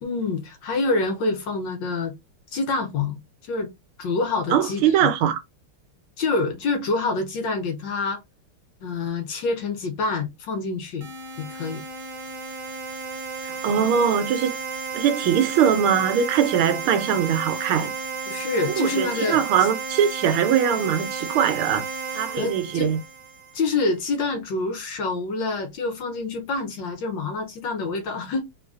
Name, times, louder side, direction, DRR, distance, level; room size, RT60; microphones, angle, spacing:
voice 1, 0.0-2.1 2.5-3.7 4.0-5.1 6.2-8.2 8.8-11.1 11.4-11.8 18.3-19.4 22.4-22.9 23.5-28.4, left 3 dB, 65° left, 1.4 m, -26 dB
voice 2, 4.5-5.4 13.4-14.5 14.9-17.9 18.8-21.8 22.1-23.0, right 8 dB, 80° right, 1.5 m, -21 dB
sound 1, 11.0-23.7, right 5 dB, 55° right, 1.2 m, -33 dB
3.8 x 3.1 x 2.4 m
omnidirectional pair, 2.4 m